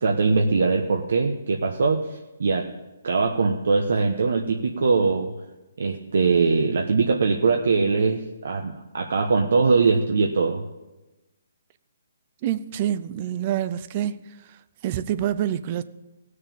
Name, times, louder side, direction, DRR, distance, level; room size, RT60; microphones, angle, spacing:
voice 1, 0.0-2.7 3.0-5.3 5.8-10.6, right 4 dB, 65° right, 1.1 m, -22 dB
voice 2, 12.4-14.2 14.5-14.6 14.8-15.8, right 11 dB, 25° right, 0.5 m, -26 dB
17.5 x 6.6 x 7.1 m
hypercardioid pair, 170°, 0 cm